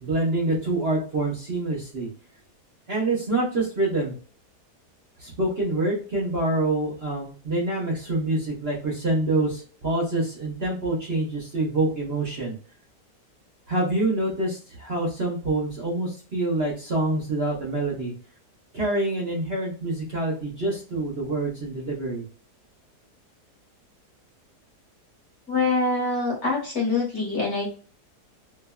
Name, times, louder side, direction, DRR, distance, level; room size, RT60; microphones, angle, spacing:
voice 1, 0.0-2.1 2.9-4.1 5.2-12.6 13.7-18.1 18.7-22.2, right 2 dB, 45° right, -4 dB, 1.1 m, -26 dB
voice 2, 25.5-27.7, left 3 dB, 45° left, -3 dB, 1.3 m, -24 dB
3.0 x 2.5 x 2.2 m, 0.41 s
omnidirectional pair, 1.8 m